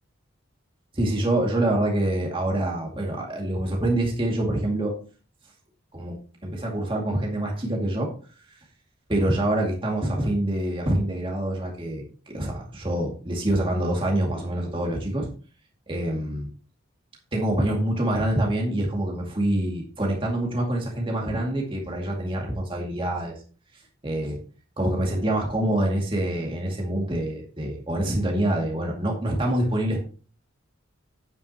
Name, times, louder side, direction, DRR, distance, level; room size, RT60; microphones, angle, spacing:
voice 1, 0.9-4.9 5.9-8.1 9.1-15.3 15.9-16.5 17.3-23.3 24.0-24.4 24.8-30.0, right 1 dB, 25° right, -1 dB, 2.2 m, -26 dB
9.3 x 9.1 x 2.9 m, 0.39 s
head